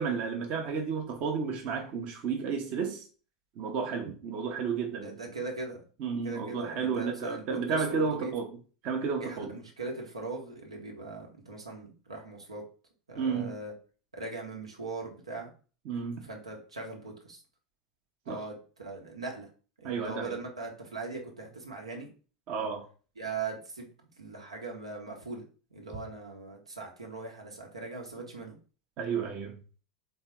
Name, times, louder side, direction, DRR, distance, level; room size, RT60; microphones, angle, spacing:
voice 1, 0.0-3.0 3.6-5.1 6.0-8.5 8.8-9.5 13.2-13.5 15.8-16.3 18.3-18.4 19.8-20.4 22.5-22.8 29.0-29.6, right 5 dB, 40° right, 0.9 m, -32 dB
voice 2, 5.0-5.8 6.2-8.3 9.2-12.6 13.1-13.7 14.1-15.5 16.2-17.4 18.2-19.5 19.8-22.1 23.2-23.9 24.2-25.4 25.7-28.6, right 3 dB, 80° right, 1.2 m, -40 dB
3.6 x 3.3 x 4.4 m
figure-of-eight pair, 80°, 3 cm